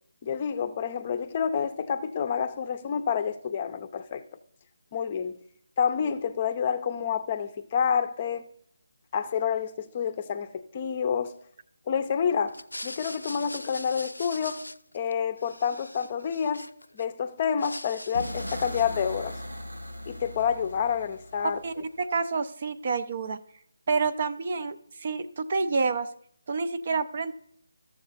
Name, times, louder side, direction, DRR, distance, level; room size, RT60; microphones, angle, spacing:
voice 1, 0.2-4.2 4.9-5.4 5.8-8.4 9.1-11.3 11.9-14.7 14.9-16.7 16.9-19.4 20.1-21.6, left 7 dB, 30° left, 0.5 m, -28 dB
sound 1, 12.5-15.1 15.4-17.1 17.4-19.0, left 1 dB, 85° left, 0.4 m, -42 dB
sound 2, 18.2-22.1, equal, 90° right, 1.4 m, -39 dB
voice 2, 21.6-23.4 23.9-26.1 26.5-27.3, right 4 dB, 45° right, 0.5 m, -28 dB
12.5 x 7.1 x 4.0 m
figure-of-eight pair, 155°, 0 cm